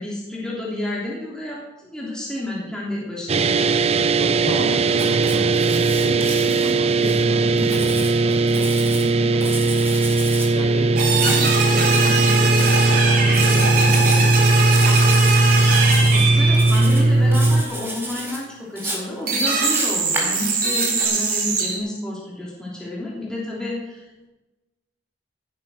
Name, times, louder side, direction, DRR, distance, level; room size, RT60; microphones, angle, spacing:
voice 1, 0.0-3.7 16.1-24.3, left 1 dB, 5° left, -5 dB, 3.1 m, -30 dB
sound 1, 3.3-17.6, right 2 dB, 35° right, 0.5 m, -18 dB
voice 2, 4.0-14.3, right 1 dB, 45° left, -1 dB, 4.4 m, -33 dB
Writing, 4.9-7.2 7.6-9.1 9.4-10.5 11.1-11.4 12.5-13.0 13.3-14.3 14.6-15.4 15.6-16.2 16.5-17.0 17.3-18.4 18.8-21.0, right 1 dB, 10° right, 4.3 m, -32 dB
sound 2, 11.0-17.3 19.3-21.8, right 4 dB, 55° right, 3.3 m, -22 dB
16.5 x 7.6 x 6.5 m, 1.1 s
head